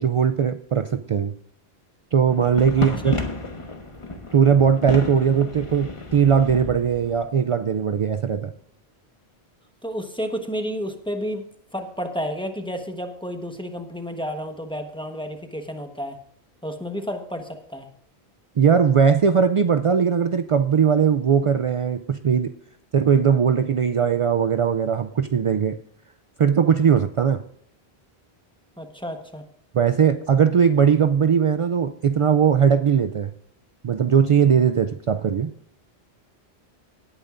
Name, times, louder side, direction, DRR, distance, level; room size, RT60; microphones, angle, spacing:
voice 1, 0.0-1.3 2.1-3.1 4.3-8.5 18.6-22.5 22.9-25.8 26.4-27.4 29.7-33.3 33.8-35.5, right 7 dB, 60° right, 9 dB, 0.3 m, -19 dB
sound 1, 2.3-7.2, left 2 dB, 30° left, 1.3 m, -32 dB
voice 2, 2.8-3.2 9.8-11.4 11.7-16.2 16.6-17.9 28.8-29.4, equal, 5° left, 5 dB, 1.1 m, -31 dB
18.0 x 9.0 x 2.5 m, 0.68 s
omnidirectional pair, 1.1 m